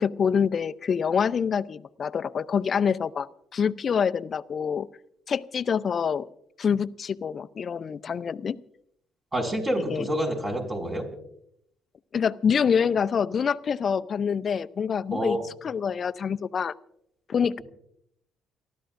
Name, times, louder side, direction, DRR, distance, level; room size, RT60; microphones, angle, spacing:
voice 1, 0.0-4.9 5.3-6.3 6.6-8.6 9.9-10.1 12.1-15.4 15.6-16.7 17.3-17.6, left 7 dB, 50° left, 15 dB, 0.6 m, -26 dB
voice 2, 9.3-11.1 15.1-15.4, equal, 30° right, 3 dB, 5.6 m, -27 dB
29.5 x 12.5 x 2.6 m, 0.73 s
hypercardioid pair, 60°, 0 cm